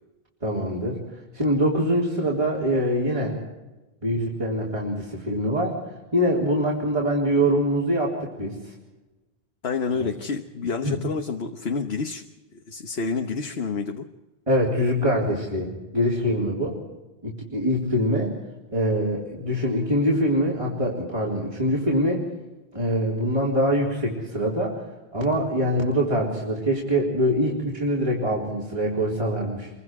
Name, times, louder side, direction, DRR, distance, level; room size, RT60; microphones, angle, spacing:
voice 1, 0.4-1.0 1.3-3.4 4.0-5.8 6.1-8.6 9.9-10.1 10.8-11.0 14.5-16.8 17.2-18.4 18.7-22.3 22.7-24.8 25.1-29.7, equal, 30° right, -5 dB, 4.0 m, -24 dB
voice 2, 9.6-12.3 12.5-14.1, left 5 dB, 75° left, 4 dB, 1.4 m, -28 dB
27.0 x 23.5 x 4.9 m, 1.1 s
omnidirectional pair, 1.1 m